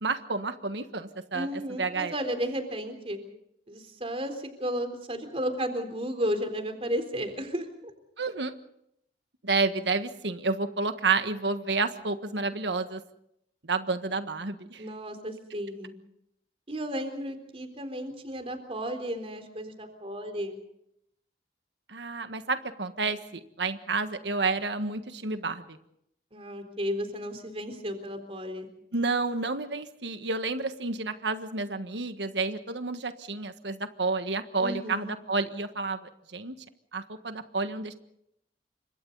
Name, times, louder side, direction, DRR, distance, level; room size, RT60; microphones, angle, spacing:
voice 1, 0.0-1.5 1.8-2.1 8.2-8.5 9.4-13.0 13.7-14.8 21.9-25.6 28.9-36.0 36.3-36.5 36.9-37.9, right 3 dB, 85° right, 9 dB, 1.5 m, -30 dB
voice 2, 1.3-3.2 3.7-7.7 14.8-15.9 16.7-20.6 26.3-28.7 34.6-35.1, equal, 35° right, 7 dB, 3.9 m, -33 dB
29.5 x 25.5 x 4.1 m, 0.75 s
head